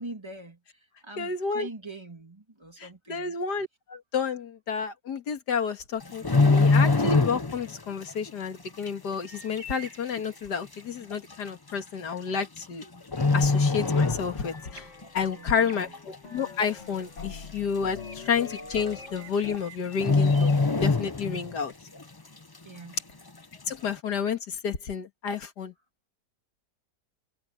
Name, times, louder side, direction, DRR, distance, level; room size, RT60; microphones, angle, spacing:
voice 1, 0.0-3.3 15.3-15.9 22.6-23.0, right 2 dB, 15° right, 2.2 m, -43 dB
voice 2, 1.2-1.7 2.8-12.9 13.3-14.9 15.1-21.7 23.7-25.7, left 6 dB, 75° left, 2.3 m, -30 dB
sound 1, 6.0-7.8 8.0-8.3 8.9-9.0 9.8-9.9 10.2-10.3 11.1-11.3 12.4-12.8 13.1-14.7 15.0-15.2 15.7-16.3 16.6-16.7 16.9-17.0 17.4-17.5 18.5-18.6 18.9-19.2 19.4-19.6 19.9-21.6 22.0-22.1, left 3 dB, 25° left, 0.5 m, -23 dB
sound 2, 9.2-10.9 14.4-17.6 18.0-21.4, equal, 55° right, 8.3 m, -49 dB
sound 3, 13.2-19.6, left 5 dB, 45° left, 2.2 m, -45 dB
omnidirectional pair, 1.8 m